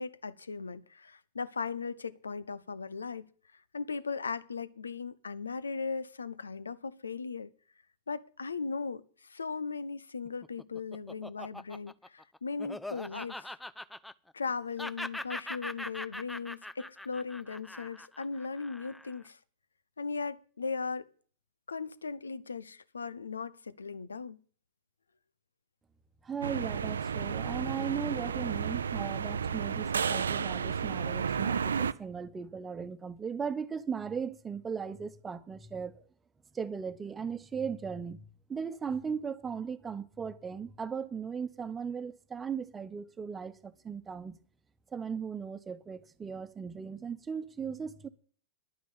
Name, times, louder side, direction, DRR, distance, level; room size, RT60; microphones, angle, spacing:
voice 1, 0.0-3.3 3.7-7.5 8.1-13.5 14.3-19.4 20.0-21.1 21.7-24.4, left 4 dB, 75° left, 0.8 m, -38 dB
Laughter, 10.3-14.5 14.8-19.2, left 1 dB, 5° left, 0.5 m, -42 dB
voice 2, 26.2-36.0 36.5-38.2 38.5-44.4 44.9-48.1, right 6 dB, 15° right, 1.1 m, -37 dB
sound 1, 26.4-31.9, right 6 dB, 70° right, 0.6 m, -32 dB
11.5 x 9.5 x 7.2 m
figure-of-eight pair, 90°, 0 cm